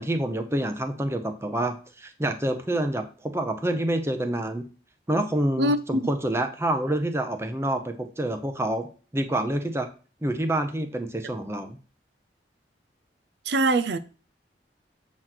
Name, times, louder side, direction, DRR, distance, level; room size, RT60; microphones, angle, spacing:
voice 1, 0.0-4.6 5.1-8.9 9.1-9.9 10.2-11.8, right 1 dB, 15° right, 0.7 m, -27 dB
voice 2, 5.6-6.1 13.5-14.0, right 1 dB, 70° right, 0.5 m, -23 dB
7.8 x 3.1 x 5.9 m
head